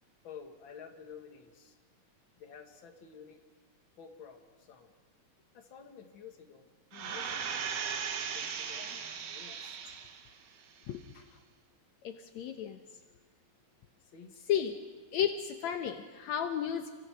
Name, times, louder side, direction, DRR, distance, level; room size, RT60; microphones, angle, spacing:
voice 1, 0.2-1.8 2.4-3.4 4.0-4.9 5.5-9.0 9.3-9.8 14.1-14.4, left 7 dB, 45° left, 3 dB, 2.6 m, -51 dB
sound 1, 6.9-10.3 10.8-10.9, right 7 dB, 85° right, 2.9 m, -37 dB
voice 2, 10.9-11.2 12.0-12.8 14.5-14.8 15.1-16.9, left 9 dB, 75° left, 6 dB, 2.2 m, -33 dB
29.5 x 25.0 x 6.3 m, 1.4 s
omnidirectional pair, 3.3 m